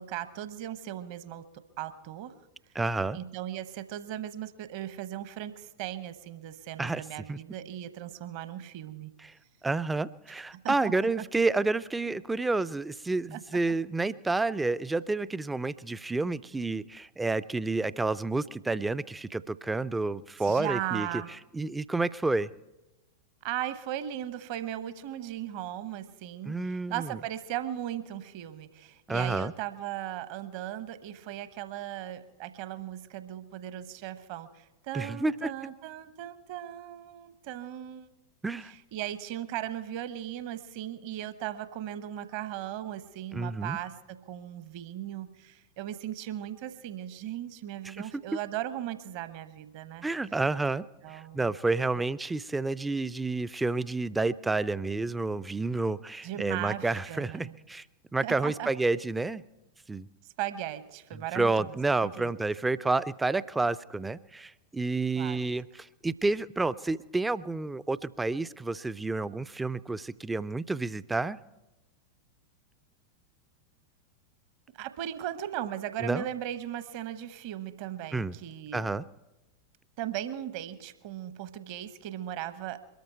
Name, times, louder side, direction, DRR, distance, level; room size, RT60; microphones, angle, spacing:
voice 1, 0.0-2.3 3.1-9.1 10.5-11.2 13.3-13.4 20.4-21.3 23.4-38.1 38.6-50.1 51.0-51.5 51.9-52.0 56.2-57.6 58.2-58.7 60.4-62.3 65.2-65.4 74.8-78.9 80.0-82.8, right 12 dB, 45° right, 13 dB, 1.0 m, -37 dB
voice 2, 2.8-3.2 6.8-7.0 7.3-7.4 9.6-21.1 21.5-22.5 26.4-27.1 29.1-29.5 34.9-35.5 38.4-38.7 43.3-43.8 47.9-48.1 50.0-57.8 58.1-59.4 59.9-60.1 61.1-71.4 76.0-76.3 78.1-78.4 78.7-79.1, right 3 dB, 10° right, 16 dB, 0.4 m, -30 dB
22.5 x 13.0 x 4.5 m, 1.0 s
figure-of-eight pair, 90°, 0 cm